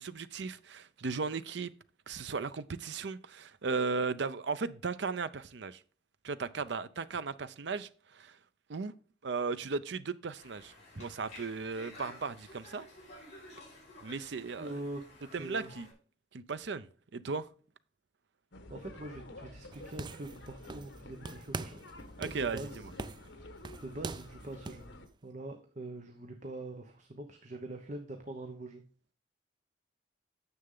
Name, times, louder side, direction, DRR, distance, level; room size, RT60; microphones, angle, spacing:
voice 1, 0.0-1.7 2.1-5.8 6.2-8.4 8.7-8.9 9.2-12.9 14.0-14.7 15.3-15.9 16.3-17.5 22.2-22.7, right 4 dB, 70° right, 0.6 m, -36 dB
Conversation, 10.4-15.9, left 2 dB, 35° left, 5.2 m, -53 dB
voice 2, 14.6-15.0 15.4-15.7 18.7-21.8 22.2-22.8 23.8-24.9 25.2-28.8, right 2 dB, 40° right, 0.9 m, -43 dB
sound 1, 18.5-25.1, left 1 dB, 80° left, 1.2 m, -50 dB
sound 2, 19.7-21.0 21.3-21.9 22.2-24.9, right 4 dB, 25° right, 0.3 m, -43 dB
9.7 x 6.9 x 3.8 m
head